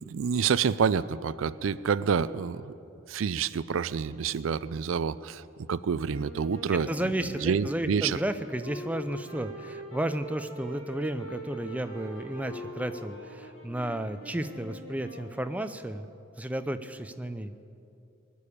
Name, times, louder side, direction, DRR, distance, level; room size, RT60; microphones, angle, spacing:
voice 1, 0.0-2.7 3.1-5.4 5.7-6.9 7.4-8.2, right 6 dB, 80° right, 17 dB, 0.4 m, -28 dB
sound 1, 6.0-16.0, right 1 dB, 80° left, 3.7 m, -43 dB
voice 2, 6.9-16.1 16.4-17.6, right 1 dB, 5° right, 10 dB, 0.5 m, -33 dB
sound 2, 10.2-14.4, left 2 dB, 25° left, 4.1 m, -53 dB
20.5 x 7.0 x 9.9 m, 2.6 s
head